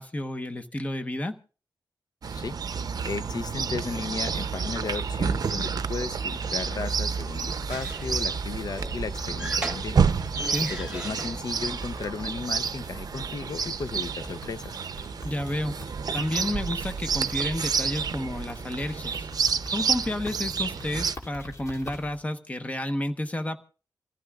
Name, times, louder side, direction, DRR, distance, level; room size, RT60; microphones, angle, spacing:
voice 1, 0.0-1.4 10.5-10.7 15.2-15.7 16.1-19.3 19.7-23.6, left 1 dB, 20° left, 1.0 m, -31 dB
Chirp tweet, 2.2-21.2, right 6 dB, 55° right, 0.6 m, -29 dB
voice 2, 3.0-10.0 10.7-14.8, left 4 dB, 60° left, 0.7 m, -35 dB
sound 1, 4.5-22.2, left 1 dB, 45° left, 2.7 m, -46 dB
sound 2, 7.1-12.2, right 1 dB, 15° right, 1.9 m, -37 dB
28.0 x 15.0 x 2.4 m
wide cardioid pair, 115°, 8 cm